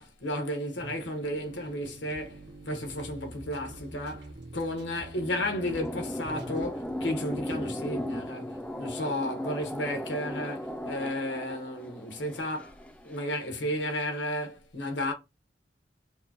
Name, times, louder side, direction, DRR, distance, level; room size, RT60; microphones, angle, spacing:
voice 1, 0.0-12.8 13.0-15.1, left 1 dB, 90° left, 1.3 m, -33 dB
sound 1, 0.8-6.8, right 1 dB, 65° right, 1.1 m, -46 dB
sound 2, 4.8-13.2, equal, 5° left, 0.4 m, -37 dB
5.2 x 2.3 x 2.8 m
head